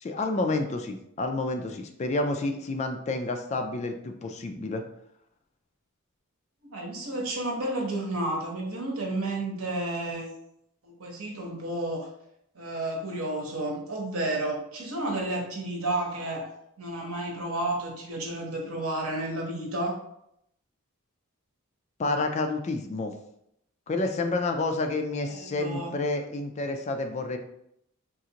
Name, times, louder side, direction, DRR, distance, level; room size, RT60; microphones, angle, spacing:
voice 1, 0.0-4.8 22.0-23.1 23.9-27.4, left 2 dB, 30° left, 5 dB, 0.3 m, -29 dB
voice 2, 6.6-10.3 10.8-12.1 12.5-16.5 16.8-20.0 25.3-25.9, right 1 dB, 85° right, 0 dB, 0.9 m, -31 dB
3.8 x 2.5 x 2.8 m, 0.76 s
head